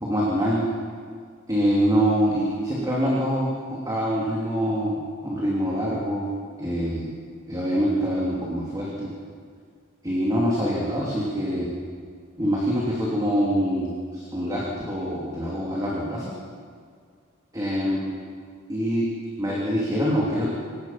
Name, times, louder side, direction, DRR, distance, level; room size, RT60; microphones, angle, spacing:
voice 1, 0.0-0.7 1.5-6.3 6.6-7.1 7.5-9.1 10.0-11.7 12.4-16.3 17.5-18.1 18.7-19.1 19.4-20.5, equal, 15° right, -5 dB, 3.0 m, -25 dB
27.0 x 17.5 x 5.9 m, 2.1 s
head